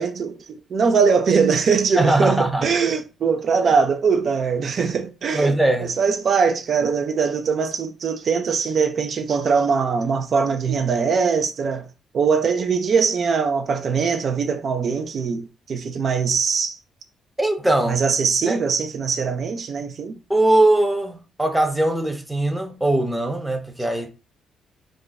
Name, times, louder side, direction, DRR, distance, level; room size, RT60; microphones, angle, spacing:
voice 1, 0.0-5.5 6.0-11.9 12.1-16.8 17.9-20.2, right 5 dB, 55° right, 0.4 m, -21 dB
voice 2, 2.0-2.7 5.3-5.9 17.4-18.0 18.5-18.6 20.3-24.1, right 1 dB, 5° right, 0.6 m, -20 dB
2.5 x 2.2 x 3.9 m
cardioid pair, 90°, 0 cm